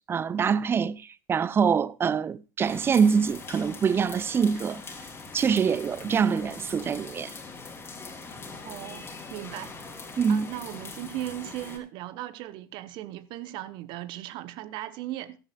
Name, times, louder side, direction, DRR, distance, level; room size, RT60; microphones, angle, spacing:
voice 1, 0.1-4.8 5.3-7.3 10.2-10.5, right 6 dB, 20° right, 0.4 m, -24 dB
sound 1, 2.6-11.8, left 4 dB, 20° left, 2.7 m, -42 dB
voice 2, 8.6-10.0 10.3-15.4, right 14 dB, 50° right, 0.8 m, -37 dB
14.0 x 12.5 x 2.3 m
figure-of-eight pair, 75°, 11 cm